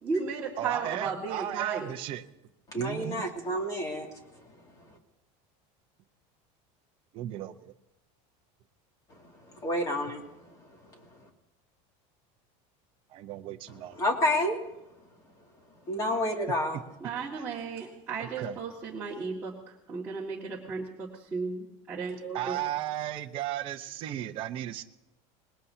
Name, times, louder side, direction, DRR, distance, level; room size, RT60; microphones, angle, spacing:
voice 1, 0.0-1.9 17.0-22.6, right 5 dB, 15° right, -8 dB, 2.1 m, -35 dB
voice 2, 0.6-2.2 2.7-3.3 7.1-7.7 13.1-14.0 18.2-18.6 22.3-24.8, right 12 dB, 35° right, 5 dB, 0.8 m, -35 dB
voice 3, 2.7-4.4 4.8-5.0 9.2-11.2 13.9-14.6 15.9-16.8, left 1 dB, 20° left, 1 dB, 2.4 m, -30 dB
25.0 x 20.5 x 2.8 m, 0.90 s
cardioid pair, 180°, 17 cm